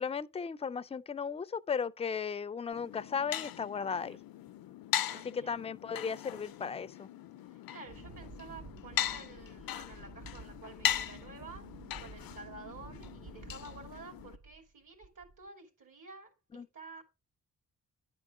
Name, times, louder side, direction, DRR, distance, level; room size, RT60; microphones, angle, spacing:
voice 1, 0.0-4.2 5.3-7.1 16.5-16.7, left 6 dB, 20° left, 0.3 m, -36 dB
sound 1, 2.7-14.4, left 11 dB, 90° left, 0.5 m, -39 dB
voice 2, 3.7-4.3 5.1-5.6 6.8-6.9 7.5-11.7 12.0-17.0, right 4 dB, 65° right, 2.7 m, -51 dB
Wind, 7.9-14.7 15.0-15.5, right 4 dB, 40° right, 0.6 m, -52 dB
9.9 x 4.7 x 3.7 m
cardioid pair, 85°, 35 cm